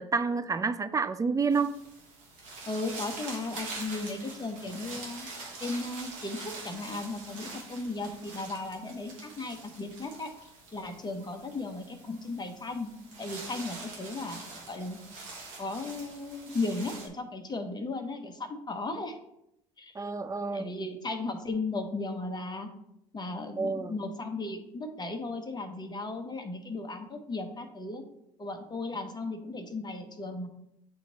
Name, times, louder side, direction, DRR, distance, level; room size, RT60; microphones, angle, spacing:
voice 1, 0.0-1.8 20.0-20.7 23.6-24.0, right 4 dB, 20° right, 0.5 m, -29 dB
sound 1, 1.5-17.1, right 3 dB, 80° right, 1.8 m, -44 dB
voice 2, 2.7-5.3 5.6-10.3 10.7-12.9 13.2-15.0 15.6-19.2 19.8-19.9 20.5-22.7 23.1-28.0 28.4-30.5, left 2 dB, 25° left, 1.2 m, -36 dB
8.6 x 3.0 x 4.1 m
hypercardioid pair, 65°, 16 cm